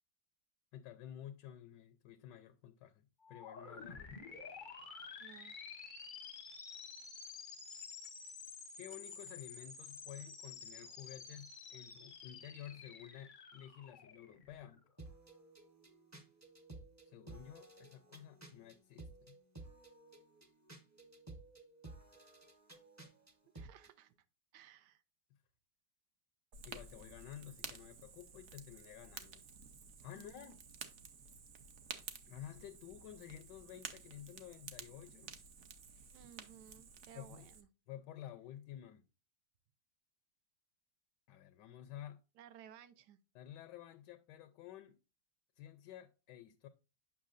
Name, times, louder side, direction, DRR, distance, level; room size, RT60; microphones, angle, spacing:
voice 1, 0.7-4.2 8.8-14.8 17.0-19.4 26.6-29.4 30.0-30.6 32.3-35.4 37.1-37.5 37.9-39.1 41.3-42.2 43.3-45.0 45.6-46.7, left 11 dB, 80° left, 1.2 m, -52 dB
sound 1, 3.2-14.9, left 5 dB, 45° left, 0.7 m, -51 dB
voice 2, 5.2-5.6 23.5-24.1 24.5-25.0 30.1-30.5 36.1-37.7 42.4-43.2, right 10 dB, 75° right, 1.2 m, -58 dB
sound 2, 15.0-24.0, right 2 dB, 15° right, 0.5 m, -55 dB
Fire, 26.5-37.6, right 6 dB, 55° right, 0.8 m, -52 dB
8.4 x 5.8 x 2.5 m
omnidirectional pair, 1.9 m